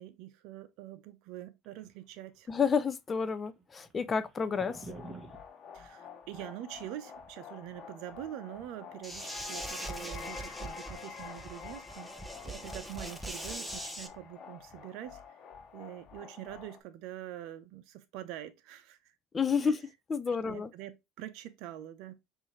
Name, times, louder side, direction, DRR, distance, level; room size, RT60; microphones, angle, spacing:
voice 1, 0.0-2.5 5.7-15.2 15.7-19.1 19.6-19.7 20.3-22.1, right 13 dB, 70° right, 0.6 m, -45 dB
sound 1, 1.6-2.6 2.9-3.0 3.3-5.4, right 2 dB, 20° right, 1.3 m, -47 dB
voice 2, 2.5-4.9 19.3-19.8 20.1-20.7, left 6 dB, 25° left, 0.5 m, -30 dB
sound 2, 4.6-16.8, left 6 dB, 45° left, 1.0 m, -48 dB
sound 3, 9.0-14.1, right 1 dB, ahead, 0.9 m, -42 dB
5.4 x 2.7 x 3.1 m
supercardioid pair, 105°, 0 cm